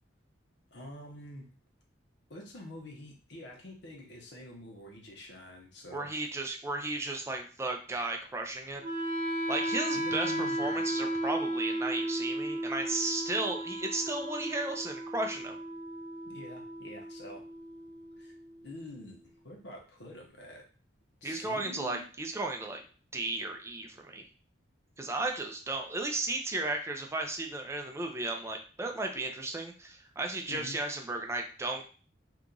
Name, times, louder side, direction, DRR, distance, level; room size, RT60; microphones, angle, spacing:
voice 1, 0.7-1.5 2.3-6.1 9.9-10.8 16.2-17.4 18.2-18.4 18.6-20.6 21.2-22.0 30.5-30.8, left 1 dB, 60° left, 1 dB, 0.9 m, -47 dB
voice 2, 5.9-8.8 9.5-15.6 21.2-22.8 23.1-24.3 25.0-31.9, right 2 dB, 15° right, 2 dB, 0.4 m, -34 dB
Wind instrument woodwind instrument, 8.8-18.8, right 1 dB, 45° right, 0.7 m, -35 dB
2.9 x 2.4 x 3.7 m, 0.39 s
head